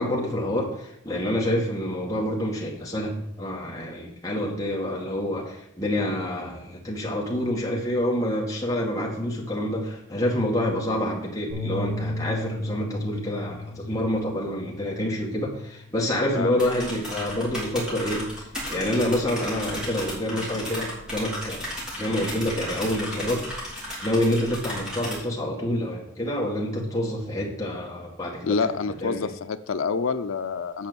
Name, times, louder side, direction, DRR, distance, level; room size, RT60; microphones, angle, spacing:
voice 1, 0.0-21.7 22.0-23.5 24.0-28.6 29.0-29.3, left 1 dB, 15° left, -3 dB, 1.9 m, -27 dB
Bass guitar, 11.5-16.0 16.4-17.7, left 1 dB, 40° right, 4.5 m, -36 dB
sound 1, 16.6-25.1, equal, 5° right, 3.1 m, -35 dB
voice 2, 28.4-30.9, left 5 dB, 80° left, 10 dB, 0.6 m, -27 dB
8.7 x 5.4 x 7.0 m, 0.78 s
head